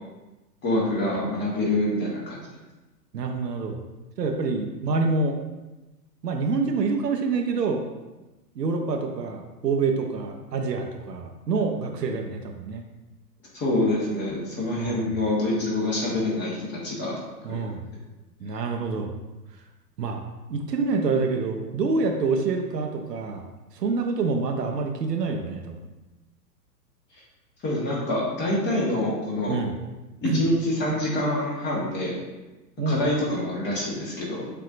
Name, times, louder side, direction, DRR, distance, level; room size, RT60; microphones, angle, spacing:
voice 1, 0.6-2.4 13.5-17.2 17.5-17.6 27.6-29.6 30.2-32.2 32.9-34.4, left 1 dB, 20° left, -4 dB, 1.3 m, -26 dB
voice 2, 3.1-3.8 4.2-5.4 6.2-7.8 8.6-12.8 14.8-15.2 17.4-17.8 18.4-19.1 20.0-20.2 20.5-23.4 23.7-25.9 29.5-29.8 30.2-30.4 32.8-33.0, right 4 dB, 75° right, 4 dB, 0.7 m, -26 dB
6.6 x 2.7 x 2.5 m, 1.1 s
figure-of-eight pair, 105°, 49 cm